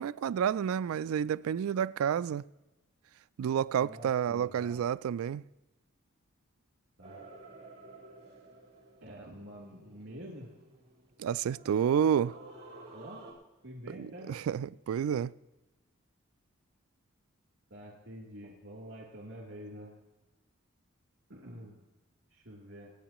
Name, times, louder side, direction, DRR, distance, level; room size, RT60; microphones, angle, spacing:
voice 1, 0.0-2.4 3.4-5.4 11.2-12.4 14.0-15.3, right 8 dB, 85° right, 0.3 m, -30 dB
voice 2, 3.8-4.8 7.0-7.2 9.0-10.5 12.9-13.3 13.6-14.3 17.7-19.9 21.3-21.8 22.3-22.9, equal, 60° right, 3.1 m, -47 dB
sound 1, 7.0-13.3, right 2 dB, 30° right, 3.8 m, -52 dB
25.5 x 9.4 x 3.0 m
head